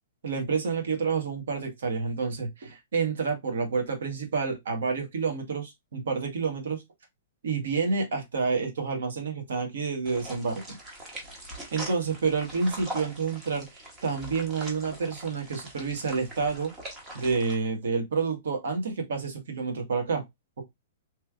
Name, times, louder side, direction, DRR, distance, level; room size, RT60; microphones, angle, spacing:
voice 1, 0.2-6.8 7.4-10.8 11.7-13.7 14.0-16.7 17.1-20.2, right 5 dB, 80° right, 1.4 m, -29 dB
sound 1, 10.1-17.6, right 1 dB, 15° right, 0.8 m, -42 dB
3.1 x 3.1 x 2.3 m
hypercardioid pair, 175°, 0 cm